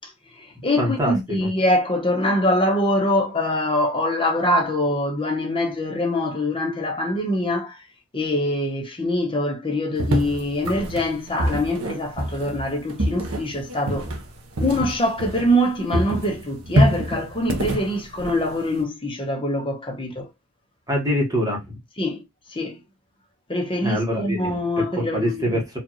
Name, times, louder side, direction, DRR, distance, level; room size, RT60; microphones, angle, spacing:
voice 1, 0.0-7.9 8.1-14.1 14.6-20.3 22.0-22.2 22.5-22.8 23.5-25.6, left 1 dB, 25° left, 0.9 m, -24 dB
voice 2, 0.8-1.5 20.9-21.8 23.8-24.5 24.8-25.8, equal, 15° right, 1.2 m, -24 dB
sound 1, 10.0-15.7 15.9-18.8, equal, 75° right, 0.9 m, -25 dB
4.3 x 2.5 x 2.9 m
head